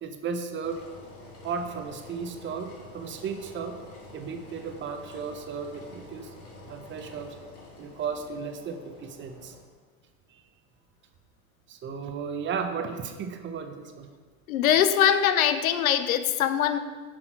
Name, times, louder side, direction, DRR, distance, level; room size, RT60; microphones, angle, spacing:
voice 1, 0.0-0.8 1.4-3.8 4.1-6.3 6.7-7.4 7.8-9.5 11.7-14.1, right 6 dB, 30° right, 7 dB, 0.7 m, -34 dB
Engine, 0.6-9.6, left 2 dB, 35° left, 1.7 m, -48 dB
voice 2, 14.5-16.8, left 9 dB, 90° left, 11 dB, 0.6 m, -22 dB
6.1 x 5.7 x 4.6 m, 1.5 s
hypercardioid pair, 105°, 41 cm